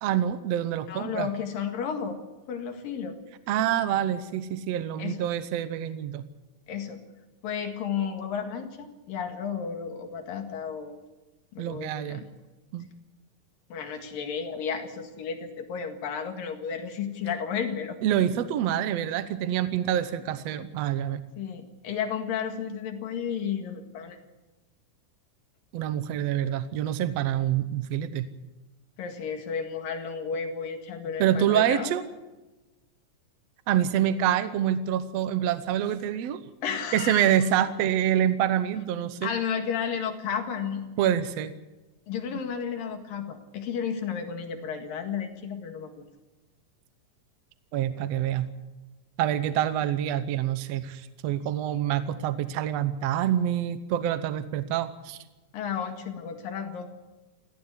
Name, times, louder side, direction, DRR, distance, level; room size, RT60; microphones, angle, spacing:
voice 1, 0.0-1.3 3.5-6.2 11.6-12.2 12.7-12.9 18.0-21.2 25.7-28.3 31.2-32.0 33.7-36.4 36.9-39.3 41.0-41.5 47.7-48.5 49.2-55.2, right 10 dB, 70° right, 12 dB, 1.6 m, -26 dB
voice 2, 0.9-2.2 2.5-3.2 5.0-5.3 6.7-7.0 7.4-11.0 11.5-12.3 13.7-18.0 21.4-24.2 29.0-31.9 36.6-37.3 39.2-40.9 42.1-46.0 55.5-56.9, left 7 dB, 80° left, 5 dB, 3.6 m, -32 dB
19.0 x 15.5 x 9.7 m, 1.1 s
omnidirectional pair, 4.0 m